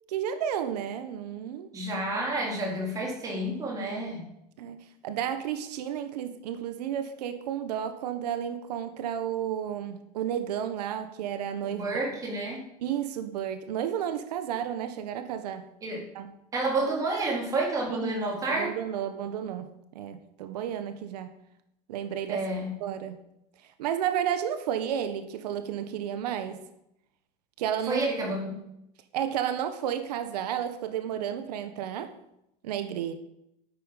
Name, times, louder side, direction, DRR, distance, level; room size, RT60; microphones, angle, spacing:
voice 1, 0.1-1.7 4.6-12.0 12.8-15.7 16.1-16.3 17.9-19.7 19.9-21.3 21.9-22.5 22.8-23.2 23.6-26.6 27.6-28.1 29.1-32.1 32.6-33.1, right 9 dB, 90° right, 9 dB, 1.6 m, -32 dB
voice 2, 1.7-4.2 11.6-12.6 15.8-16.0 16.5-18.7 22.3-22.7 27.9-28.5, right 2 dB, 15° right, -2 dB, 4.3 m, -30 dB
11.5 x 9.1 x 9.3 m, 0.82 s
supercardioid pair, 175°, 20 cm